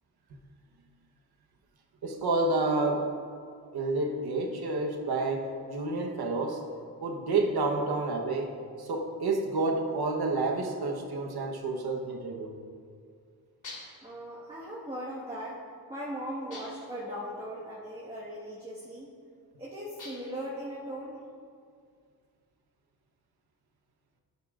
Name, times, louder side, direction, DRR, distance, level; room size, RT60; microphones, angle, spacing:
voice 1, 2.0-3.1 3.7-6.6 7.0-8.5 8.8-12.5 17.0-17.1, right 3 dB, 80° right, 2 dB, 1.1 m, -29 dB
sound 1, 13.6-14.1 16.5-17.0 20.0-20.4, left 2 dB, 55° left, 2.5 m, -45 dB
voice 2, 14.0-15.6 15.9-19.1 19.6-21.2, equal, 15° right, -8 dB, 1.5 m, -38 dB
11.5 x 11.0 x 2.5 m, 2.2 s
wide cardioid pair, 130°, 38 cm